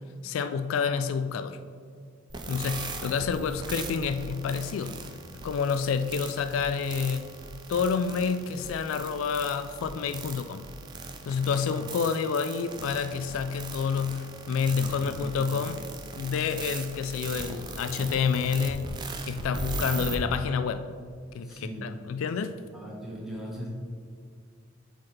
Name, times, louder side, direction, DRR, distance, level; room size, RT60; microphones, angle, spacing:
voice 1, 0.2-1.6 2.5-5.0 5.4-7.3 7.7-10.6 11.3-15.8 16.1-19.0 19.2-20.8 21.3-22.5, left 6 dB, 75° left, 10 dB, 0.3 m, -28 dB
sound 1, 2.3-20.2, right 3 dB, 20° right, 0.4 m, -39 dB
voice 2, 14.7-15.7 21.4-21.9 22.7-23.7, equal, ahead, -5 dB, 1.3 m, -40 dB
8.3 x 4.0 x 3.3 m, 2.2 s
head